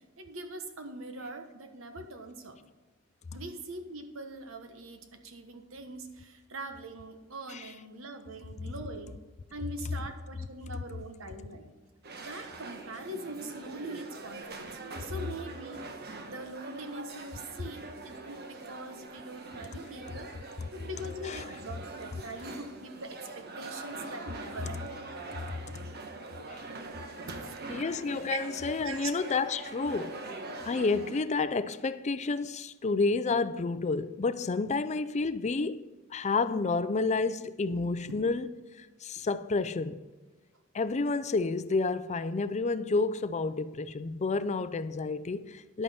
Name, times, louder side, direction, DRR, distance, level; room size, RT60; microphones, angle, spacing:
voice 1, 0.2-2.6 3.3-9.2 9.5-11.7 12.2-15.8 16.3-20.3 20.7-24.9 27.4-27.8 28.3-28.4 28.8-29.1 37.7-38.2 39.2-39.3, right 2 dB, 70° right, 1.2 m, -42 dB
sound 1, 12.0-31.2, right 2 dB, 50° right, 1.1 m, -43 dB
voice 2, 25.3-25.8 26.5-26.6 27.7-30.3 30.6-35.8 36.1-38.5 38.8-40.0 40.7-45.8, left 3 dB, 35° left, 0.4 m, -30 dB
11.0 x 8.6 x 4.3 m
head